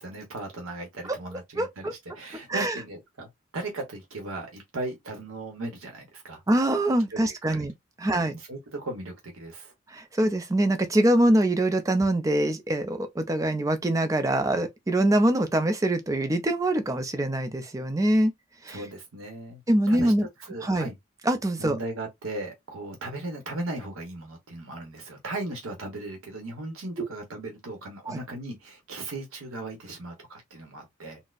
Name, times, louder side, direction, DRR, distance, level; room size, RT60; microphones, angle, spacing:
voice 1, 0.0-3.3 3.5-6.4 7.1-7.6 8.0-9.7 18.7-19.6 19.9-20.1 20.4-21.0 21.6-31.2, right 2 dB, 85° right, 0.9 m, -37 dB
voice 2, 1.6-1.9 2.5-2.8 6.5-7.7 8.0-8.4 9.9-18.3 18.6-18.9 19.7-20.3 20.6-20.9 21.2-21.8 27.0-27.1 28.1-28.2, right 1 dB, 15° right, 0.4 m, -24 dB
4.0 x 2.0 x 2.4 m
head